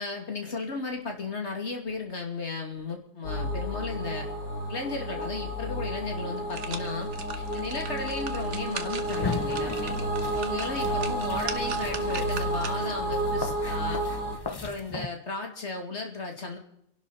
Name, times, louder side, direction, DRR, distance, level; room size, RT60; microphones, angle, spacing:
voice 1, 0.0-4.3 4.7-10.0 10.3-14.0 14.5-16.6, left 3 dB, 50° left, 2 dB, 2.9 m, -35 dB
sound 1, 3.2-14.4, right 1 dB, 90° left, 3.6 m, -31 dB
sound 2, 6.2-13.0 13.5-13.6, right 6 dB, 55° right, 1.4 m, -40 dB
sound 3, 9.1-15.1, left 4 dB, 25° left, 0.5 m, -37 dB
28.5 x 12.0 x 4.3 m, 0.76 s
omnidirectional pair, 1.5 m